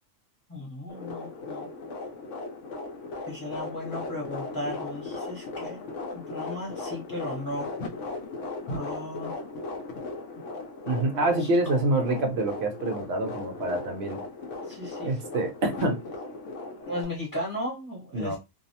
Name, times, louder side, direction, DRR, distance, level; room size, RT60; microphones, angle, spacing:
voice 1, 0.5-1.7 3.3-7.7 8.6-9.5 11.4-11.5 14.7-15.2 16.9-18.4, left 1 dB, 15° left, 0.9 m, -36 dB
sound 1, 0.9-17.0, left 3 dB, 65° left, 0.9 m, -37 dB
voice 2, 10.8-14.2 15.0-16.0 18.1-18.4, right 2 dB, 65° right, 0.7 m, -26 dB
2.6 x 2.0 x 2.7 m
omnidirectional pair, 1.5 m